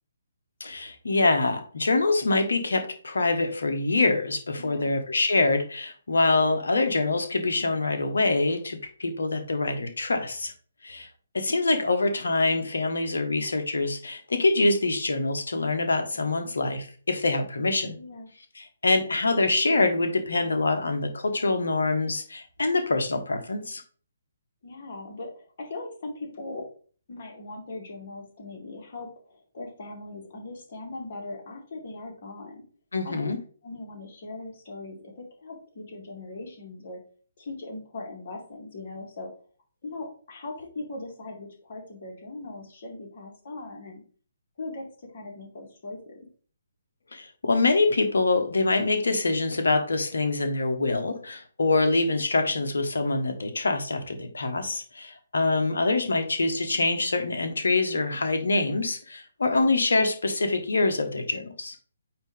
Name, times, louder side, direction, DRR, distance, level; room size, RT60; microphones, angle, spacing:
voice 1, 0.6-10.5 10.8-11.1 11.3-18.0 18.6-23.8 32.9-33.4 47.1-61.7, left 3 dB, 65° left, 6 dB, 1.4 m, -25 dB
voice 2, 4.6-4.9 18.0-18.3 24.6-26.6 27.1-32.6 33.0-33.3 33.6-37.0 37.4-39.3 39.8-44.0 44.6-46.3, left 2 dB, 45° left, -1 dB, 2.4 m, -39 dB
8.7 x 3.0 x 3.7 m, 0.43 s
figure-of-eight pair, 135°, 0 cm